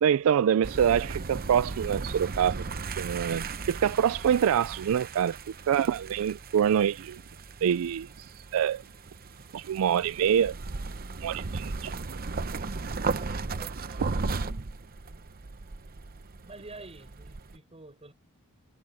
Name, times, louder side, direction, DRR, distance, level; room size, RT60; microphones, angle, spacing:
voice 1, 0.0-2.6 3.0-5.4 5.7-7.2 7.6-8.8 9.5-10.6 11.2-11.9, right 8 dB, 70° right, 0.3 m, -25 dB
sound 1, 0.6-17.6, right 4 dB, 45° right, 0.8 m, -36 dB
voice 2, 13.1-14.1 15.1-15.2 16.4-18.1, right 2 dB, 30° right, 7.2 m, -48 dB
head